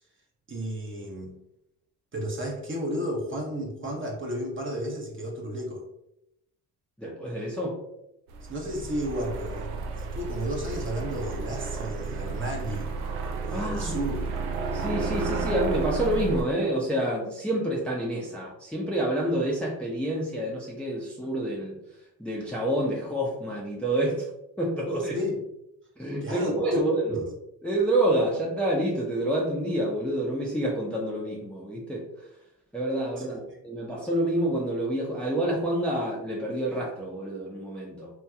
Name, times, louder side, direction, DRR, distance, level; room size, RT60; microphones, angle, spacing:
voice 1, 0.5-1.4 2.1-5.8 8.5-9.7 10.0-12.9 13.5-14.1 25.0-25.4 26.2-26.8 27.1-27.2 33.2-33.6, equal, 25° right, -1 dB, 0.9 m, -33 dB
voice 2, 7.0-7.8 13.5-13.9 14.7-21.7 22.2-24.3 24.6-25.2 26.0-27.2 27.6-32.1 32.7-38.1, right 1 dB, 5° left, -4 dB, 0.7 m, -28 dB
sound 1, 8.3-16.4, right 4 dB, 85° right, 0.5 m, -32 dB
2.9 x 2.7 x 2.3 m, 0.83 s
hypercardioid pair, 55°, 46 cm